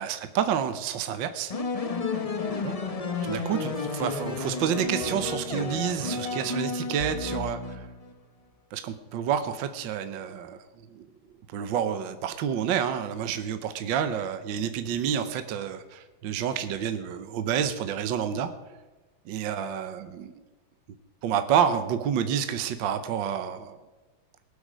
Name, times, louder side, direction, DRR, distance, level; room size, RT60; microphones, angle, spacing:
voice 1, 0.0-1.5 2.6-2.7 3.2-7.9 8.7-10.6 10.9-11.1 11.5-18.5 19.3-20.3 21.2-23.7, right 8 dB, 70° right, 9 dB, 1.5 m, -29 dB
sound 1, 1.5-8.1, left 3 dB, 45° left, 0.4 m, -32 dB
23.5 x 8.3 x 5.1 m, 1.2 s
omnidirectional pair, 2.3 m